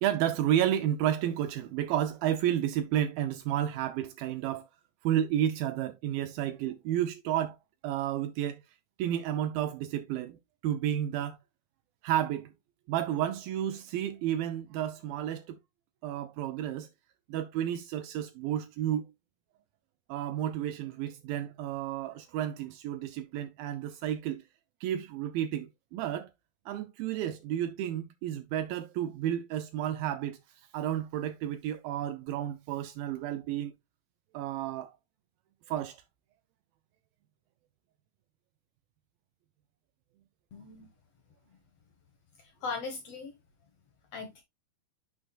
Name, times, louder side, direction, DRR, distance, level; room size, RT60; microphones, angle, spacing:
voice 1, 0.0-4.7 5.0-7.6 7.8-8.6 9.0-10.4 10.6-11.4 12.0-12.5 12.9-15.6 16.0-16.9 17.3-19.1 20.1-24.4 24.8-26.3 26.7-30.4 30.7-33.7 34.3-34.9 35.7-36.0, right 11 dB, 80° right, 2.4 m, -31 dB
voice 2, 40.5-40.9 42.4-43.3 44.1-44.4, left 4 dB, 60° left, 1.8 m, -39 dB
9.7 x 6.1 x 2.3 m
omnidirectional pair, 4.2 m